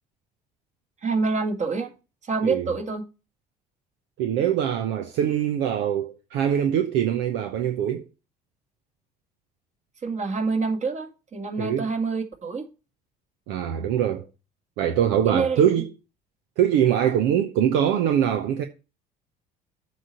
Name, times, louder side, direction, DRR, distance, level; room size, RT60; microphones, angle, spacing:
voice 1, 1.0-1.9 2.2-3.1 10.0-12.7 15.2-15.6, right 4 dB, 35° right, 2.1 m, -26 dB
voice 2, 4.2-8.1 11.6-11.9 13.5-14.2 14.8-15.8 16.6-18.6, right 9 dB, 60° right, 0.8 m, -23 dB
7.7 x 4.2 x 6.7 m
figure-of-eight pair, 55°, 21 cm